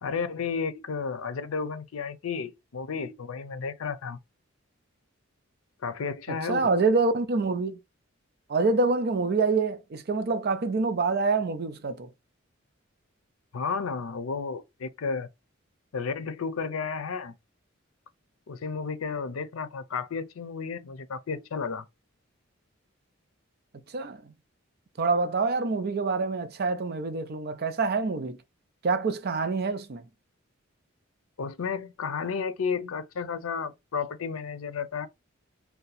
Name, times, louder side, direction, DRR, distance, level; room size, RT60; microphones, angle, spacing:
voice 1, 0.0-4.2 5.8-6.7 13.5-15.3 15.9-17.3 18.5-21.8 31.4-35.1, left 5 dB, 90° left, 0.5 m, -32 dB
voice 2, 6.3-7.8 8.5-12.1 23.9-24.3 25.0-28.4 28.8-30.1, right 3 dB, 50° right, 0.5 m, -26 dB
2.7 x 2.2 x 4.0 m
head